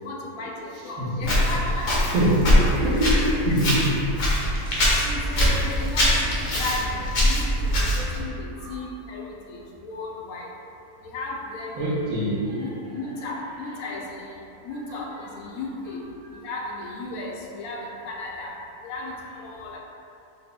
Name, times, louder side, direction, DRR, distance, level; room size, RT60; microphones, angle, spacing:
voice 1, 0.0-2.2 2.5-3.0 3.4-3.7 5.0-9.6 9.8-10.5 11.0-12.0 12.4-14.2 14.6-16.0 16.3-18.6 18.8-19.1 19.4-19.8, left 2 dB, 85° left, -1 dB, 1.0 m, -35 dB
voice 2, 1.0-1.3 2.0-3.9 8.6-8.8 11.8-12.7 14.9-15.0, right 1 dB, 85° right, -5 dB, 1.2 m, -24 dB
Walk footsteps, 1.2-8.2, equal, 50° left, 0.6 m, -23 dB
4.1 x 2.9 x 2.2 m, 2.8 s
omnidirectional pair, 1.5 m